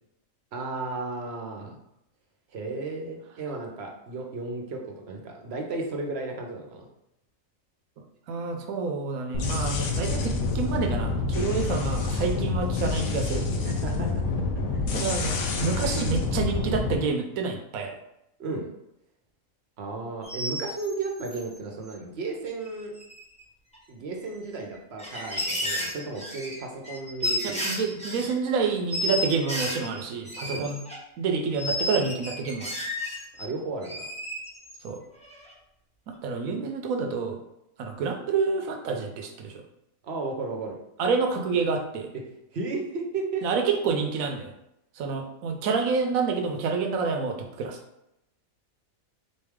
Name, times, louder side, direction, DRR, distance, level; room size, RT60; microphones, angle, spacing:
voice 1, 0.5-1.7 2.5-6.9 13.6-14.2 14.7-14.9 18.4-18.7 19.8-22.9 23.9-27.7 30.4-30.7 33.4-34.1 40.0-40.8 42.5-43.4, right 3 dB, 55° right, 1 dB, 0.9 m, -34 dB
voice 2, 8.3-13.4 14.9-17.9 27.6-30.8 31.2-32.7 34.8-35.0 36.2-37.4 37.8-39.6 41.0-42.1 43.4-44.5 45.0-47.8, right 5 dB, 80° right, 4 dB, 1.1 m, -28 dB
sound 1, 9.3-17.0, left 3 dB, 75° left, 1.1 m, -27 dB
sound 2, 20.2-21.4 22.7-22.8 23.0-23.4 23.7-23.8 24.7-28.3 28.9-31.0 31.6-33.5 33.8-34.9 35.2-35.5, left 1 dB, 5° left, 0.7 m, -32 dB
4.1 x 3.2 x 3.5 m, 0.83 s
omnidirectional pair, 1.5 m